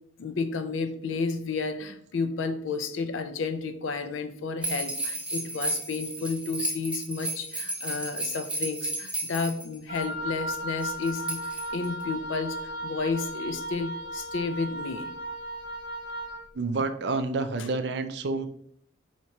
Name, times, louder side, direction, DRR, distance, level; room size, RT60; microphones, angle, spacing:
voice 1, 0.2-15.1, left 4 dB, 80° left, 10 dB, 0.4 m, -32 dB
sound 1, 4.6-10.0 10.8-12.0, right 1 dB, 5° right, 0.5 m, -33 dB
Wind instrument woodwind instrument, 9.9-16.4, right 1 dB, 45° right, 0.8 m, -36 dB
voice 2, 16.5-18.5, right 3 dB, 60° right, 9 dB, 0.4 m, -29 dB
4.5 x 2.9 x 2.8 m, 0.65 s
head